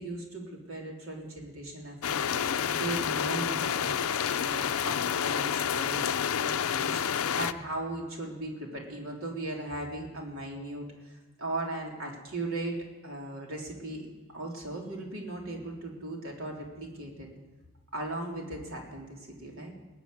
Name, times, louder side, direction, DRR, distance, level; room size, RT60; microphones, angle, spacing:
voice 1, 0.0-4.0 4.4-6.0 6.4-12.8 13.0-14.1 14.3-17.3 17.9-19.7, right 2 dB, 70° right, -1 dB, 3.4 m, -38 dB
sound 1, 2.0-7.5, left 8 dB, 75° left, 0.5 m, -29 dB
20.5 x 7.1 x 9.6 m, 1.2 s
head